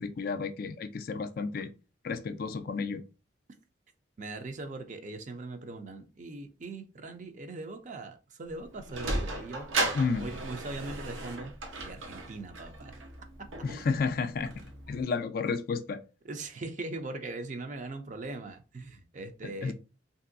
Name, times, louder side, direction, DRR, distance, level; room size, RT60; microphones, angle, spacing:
voice 1, 0.0-1.7 2.0-3.0 9.9-10.3 13.6-14.5 14.9-16.0 19.4-19.7, left 4 dB, 50° left, 0.3 m, -31 dB
voice 2, 4.2-9.7 10.1-11.5 11.8-12.9 16.2-19.7, right 2 dB, 40° right, 0.4 m, -40 dB
Sliding door, 8.5-15.0, right 2 dB, 85° right, 0.8 m, -36 dB
3.0 x 2.6 x 2.5 m
head